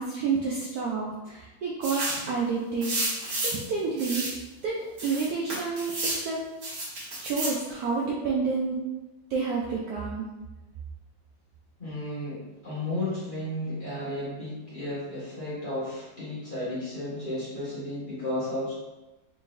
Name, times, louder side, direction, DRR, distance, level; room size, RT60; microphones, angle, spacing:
voice 1, 0.0-2.0 2.3-4.3 4.6-4.8 5.0-6.4 7.2-8.8 9.3-10.2, right 4 dB, 90° right, -3 dB, 0.8 m, -29 dB
sound 1, 1.8-2.3 2.8-3.6 4.0-4.4 5.0-6.2 6.6-7.6, right 1 dB, 50° right, 1.6 m, -31 dB
voice 2, 11.8-18.7, left 1 dB, 30° left, -10 dB, 1.1 m, -33 dB
3.8 x 3.6 x 2.5 m, 1.1 s
omnidirectional pair, 2.2 m